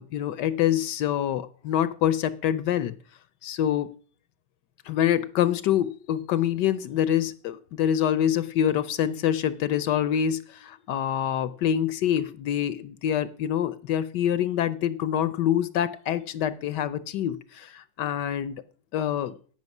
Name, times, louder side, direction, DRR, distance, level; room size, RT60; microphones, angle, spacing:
voice 1, 0.0-3.0 3.4-3.9 4.9-18.6 18.9-19.4, left 10 dB, 70° left, 15 dB, 1.2 m, -26 dB
11.0 x 8.7 x 5.9 m, 0.43 s
omnidirectional pair, 2.0 m